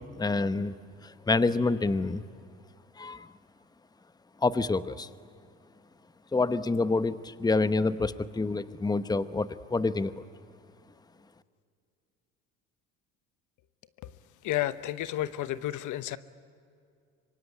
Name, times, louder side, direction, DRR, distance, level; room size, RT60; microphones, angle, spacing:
voice 1, 0.2-0.7 1.0-2.2 3.0-3.3 4.4-5.1 6.3-10.2, left 3 dB, 10° left, 13 dB, 0.9 m, -27 dB
voice 2, 14.4-16.2, left 14 dB, 60° left, 14 dB, 1.1 m, -31 dB
25.5 x 23.5 x 9.8 m, 2.4 s
supercardioid pair, 75°, 35 cm